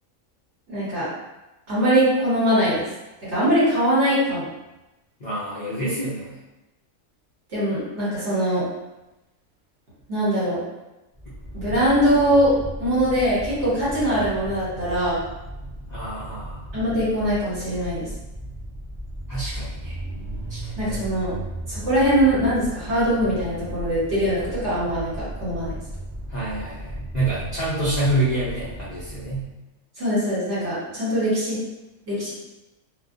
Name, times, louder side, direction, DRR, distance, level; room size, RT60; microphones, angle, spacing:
voice 1, 0.7-1.1 1.7-2.8 3.2-4.5 7.5-8.7 10.1-10.6 11.5-15.2 16.7-18.1 20.8-21.3 21.7-25.8 30.0-31.6 32.1-32.3, equal, 60° right, -9 dB, 1.4 m, -22 dB
voice 2, 5.2-6.4 11.6-11.7 15.9-16.6 19.3-20.0 20.5-21.0 26.3-29.5, right 1 dB, 55° left, -9 dB, 0.5 m, -27 dB
sound 1, 11.1-29.5, right 1 dB, 20° right, 0.4 m, -35 dB
2.3 x 2.2 x 2.5 m, 1.0 s
omnidirectional pair, 1.4 m